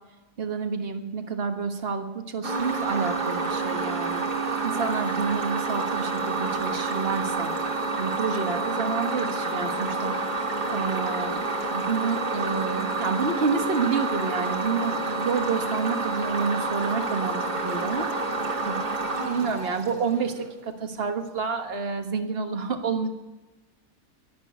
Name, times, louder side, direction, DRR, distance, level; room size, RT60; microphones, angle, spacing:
voice 1, 0.4-4.2 4.6-7.5 8.0-10.1 10.7-11.4 11.7-18.1 18.6-23.1, right 5 dB, 40° right, 5 dB, 1.5 m, -29 dB
sound 1, 2.4-20.4, right 3 dB, 90° right, 2.6 m, -29 dB
11.5 x 11.0 x 9.1 m, 1.1 s
omnidirectional pair, 1.7 m